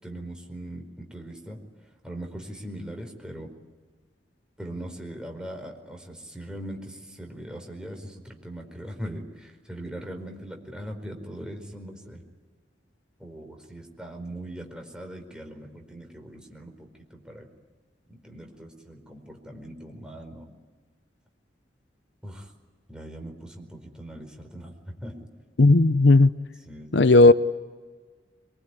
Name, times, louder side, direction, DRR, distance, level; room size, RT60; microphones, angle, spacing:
voice 1, 0.0-1.6 2.0-3.5 4.6-12.2 13.2-17.5 18.1-20.5 22.2-22.5 22.9-25.2 26.7-27.1, right 1 dB, 5° right, 4.7 m, -40 dB
voice 2, 25.6-26.3 26.9-27.3, left 2 dB, 75° left, 0.8 m, -15 dB
25.0 x 23.0 x 9.8 m
head